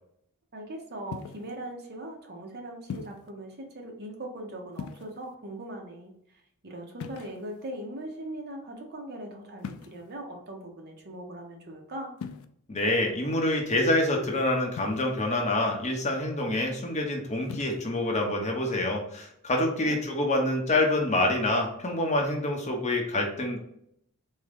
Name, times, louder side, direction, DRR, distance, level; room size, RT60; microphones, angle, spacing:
voice 1, 0.5-12.1 19.8-20.0, right 1 dB, 50° right, 2 dB, 0.7 m, -40 dB
sound 1, 1.1-1.5 2.9-3.3 4.7-5.4 7.0-7.7 9.6-10.1 12.2-12.5 14.8-15.3 17.4-17.8, left 6 dB, 65° left, 0.3 m, -40 dB
voice 2, 12.7-23.6, left 1 dB, 30° left, 1 dB, 0.7 m, -26 dB
3.6 x 2.1 x 3.4 m, 0.72 s
head